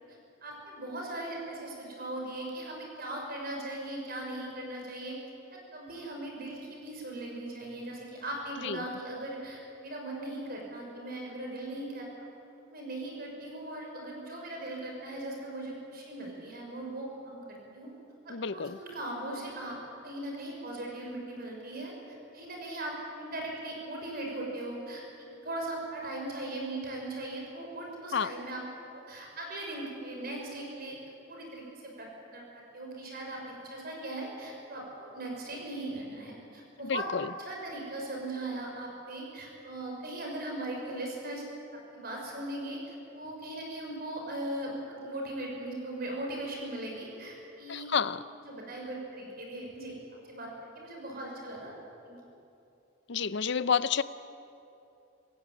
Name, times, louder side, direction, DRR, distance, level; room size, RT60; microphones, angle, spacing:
voice 1, 0.4-5.2 5.5-12.1 12.7-17.9 18.2-19.8 20.0-25.0 25.4-28.6 28.9-31.0 31.3-37.1 37.4-41.4 41.9-47.9 48.4-49.9 50.3-51.7 52.0-52.2, right 1 dB, 50° right, 0 dB, 6.0 m, -39 dB
voice 2, 18.3-18.8 28.1-28.3 36.8-37.3 47.7-48.2 53.1-54.0, left 6 dB, 60° left, 16 dB, 0.6 m, -29 dB
27.0 x 16.0 x 8.8 m, 2.8 s
head